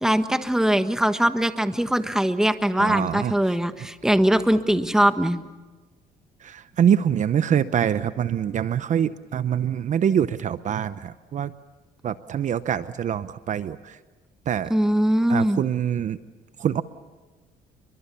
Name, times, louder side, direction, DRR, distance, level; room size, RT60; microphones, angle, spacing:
voice 1, 0.0-5.4 14.7-15.6, right 1 dB, 5° right, 9 dB, 1.4 m, -21 dB
voice 2, 2.8-3.4 6.4-11.5 12.0-14.0 14.5-14.7 15.3-16.2 16.6-16.8, right 9 dB, 45° right, 13 dB, 0.8 m, -24 dB
29.5 x 23.5 x 7.0 m, 1.3 s
cardioid pair, 110°, 17 cm